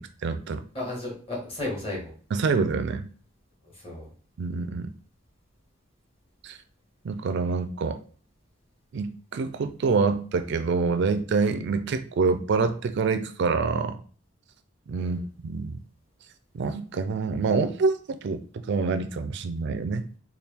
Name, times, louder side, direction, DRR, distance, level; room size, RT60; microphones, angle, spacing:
voice 1, 0.0-0.6 2.3-3.1 4.4-4.9 6.4-6.6 7.0-8.0 8.9-14.0 14.9-15.8 16.5-18.4 18.7-20.0, right 4 dB, 60° right, 11 dB, 0.4 m, -26 dB
voice 2, 0.7-2.1 3.7-4.1 14.9-15.2, left 2 dB, 30° left, -3 dB, 1.6 m, -34 dB
4.3 x 2.3 x 3.4 m, 0.41 s
head